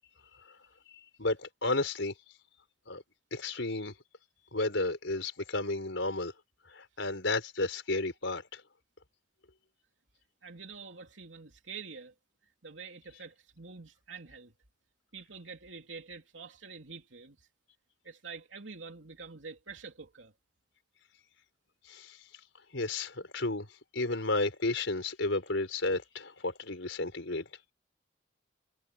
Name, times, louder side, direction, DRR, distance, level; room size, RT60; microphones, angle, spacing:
voice 1, 1.2-2.1 2.9-3.0 3.3-3.9 4.5-6.3 6.7-8.6 21.9-22.2 22.7-23.7 23.9-27.4, left 2 dB, 85° left, 4.5 m, -32 dB
voice 2, 10.4-12.1 12.6-14.5 15.1-17.5 18.0-20.3, right 5 dB, 85° right, 3.0 m, -46 dB
head